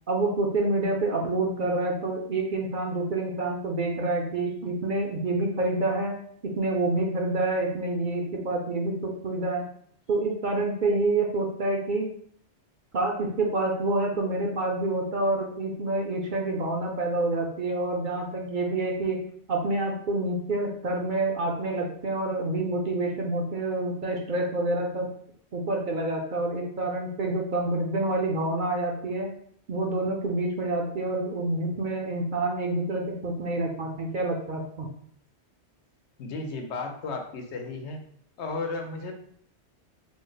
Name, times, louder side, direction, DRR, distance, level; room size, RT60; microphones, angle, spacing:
voice 1, 0.1-6.1 6.6-9.6 10.1-12.1 12.9-19.2 19.5-25.1 25.5-29.3 29.7-34.9, right 2 dB, 55° right, 0 dB, 0.7 m, -27 dB
voice 2, 36.2-38.0 38.4-39.1, left 3 dB, 80° left, 4 dB, 1.0 m, -34 dB
4.0 x 2.1 x 3.8 m, 0.62 s
omnidirectional pair, 1.2 m